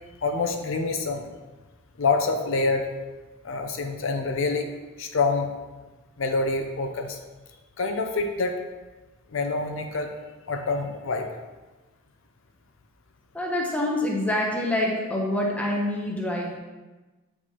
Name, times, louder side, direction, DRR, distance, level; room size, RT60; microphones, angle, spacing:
voice 1, 0.2-1.3 2.0-2.8 3.4-4.7 5.0-5.5 6.2-7.2 7.8-8.5 9.3-10.1 10.5-11.3, left 3 dB, 65° left, 5 dB, 0.5 m, -26 dB
voice 2, 13.3-16.6, left 1 dB, 5° left, -2 dB, 0.8 m, -26 dB
8.2 x 4.6 x 2.9 m, 1.2 s
head